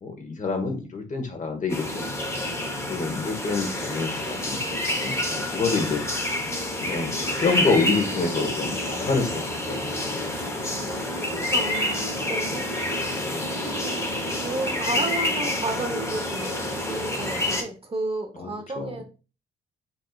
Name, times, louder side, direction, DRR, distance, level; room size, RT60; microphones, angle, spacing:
voice 1, 0.0-2.6 2.9-4.6 4.9-6.0 6.8-10.0 13.3-13.6 18.4-19.0, left 4 dB, 40° left, 4 dB, 1.1 m, -27 dB
sound 1, 1.7-17.6, left 1 dB, 15° left, 1.0 m, -28 dB
voice 2, 11.5-12.7 13.6-19.0, right 2 dB, 30° right, 4 dB, 1.0 m, -32 dB
4.2 x 3.5 x 2.4 m, 0.33 s
cardioid pair, 90°, 20 cm